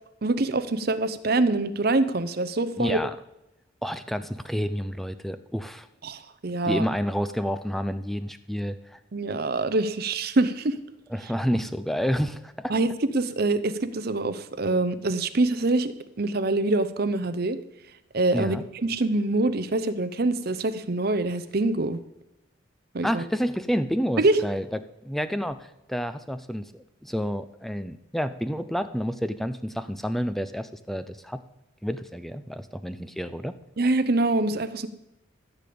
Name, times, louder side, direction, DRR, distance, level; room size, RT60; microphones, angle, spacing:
voice 1, 0.2-3.0 6.0-6.9 9.1-10.8 12.7-12.9 13.1-15.9 16.2-17.6 18.1-22.0 22.9-23.2 24.2-24.4 33.8-34.9, right 2 dB, 50° right, 12 dB, 0.7 m, -25 dB
voice 2, 2.8-3.1 3.8-5.9 6.6-9.0 11.1-12.7 18.3-18.6 23.0-24.7 25.0-26.7 27.0-31.4 31.8-33.5, equal, ahead, 11 dB, 0.4 m, -29 dB
14.0 x 5.2 x 8.5 m, 0.88 s
head